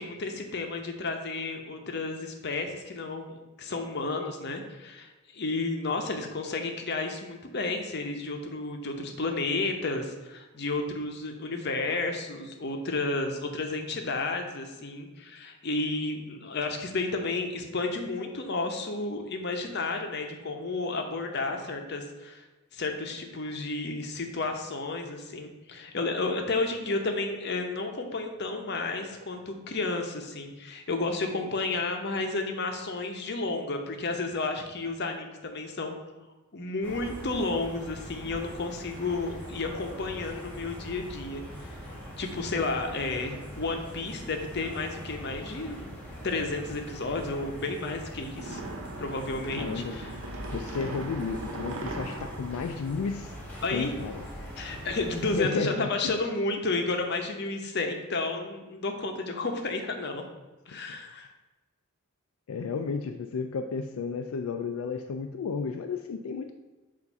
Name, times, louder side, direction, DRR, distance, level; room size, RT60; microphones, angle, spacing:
voice 1, 0.0-22.4 22.7-36.0 36.5-41.7 42.2-45.9 46.2-48.6 49.0-50.1 53.6-53.9 54.6-60.2 60.7-61.3, left 3 dB, 50° left, 4 dB, 0.7 m, -32 dB
sound 1, 36.8-55.4, equal, 5° left, 1.2 m, -42 dB
sound 2, 48.3-53.7, right 2 dB, 65° right, 0.6 m, -40 dB
voice 2, 49.5-50.0 50.5-53.4 53.7-54.3 55.2-56.2 60.9-61.0 62.5-66.5, left 5 dB, 80° left, 6 dB, 0.3 m, -33 dB
7.1 x 2.6 x 5.3 m, 1.1 s
head